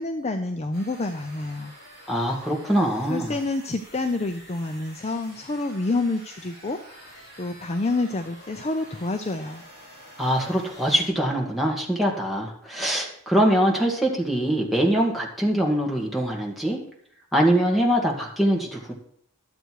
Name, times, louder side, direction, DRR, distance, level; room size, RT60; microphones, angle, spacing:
voice 1, 0.0-1.7 3.1-9.6, left 2 dB, 30° left, 6 dB, 0.5 m, -28 dB
sound 1, 0.7-11.1, equal, 45° left, 5.2 m, -48 dB
voice 2, 2.1-3.4 10.2-16.8 17.3-18.9, equal, ahead, -2 dB, 2.0 m, -23 dB
12.0 x 7.9 x 4.7 m, 0.63 s
head